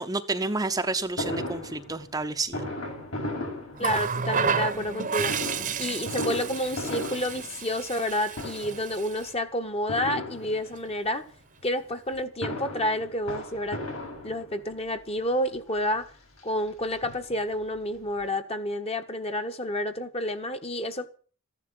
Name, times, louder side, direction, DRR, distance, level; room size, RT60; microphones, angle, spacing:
voice 1, 0.0-2.6, right 3 dB, 15° right, 0.8 m, -30 dB
Fireworks, 1.2-4.4 5.1-8.1 8.3-8.9 9.9-11.0 12.1-14.8 15.6-15.7 15.9-16.0 16.4-17.6 17.9-18.0 18.2-18.3, left 1 dB, 75° left, 6.7 m, -36 dB
voice 2, 3.8-5.3 5.8-11.3 11.6-13.8 14.2-16.1 16.4-21.1, left 1 dB, 30° left, 1.4 m, -29 dB
Water tap faucet, 3.8-9.3 10.5-10.8, right 6 dB, 40° right, 1.0 m, -31 dB
14.5 x 11.5 x 7.7 m
head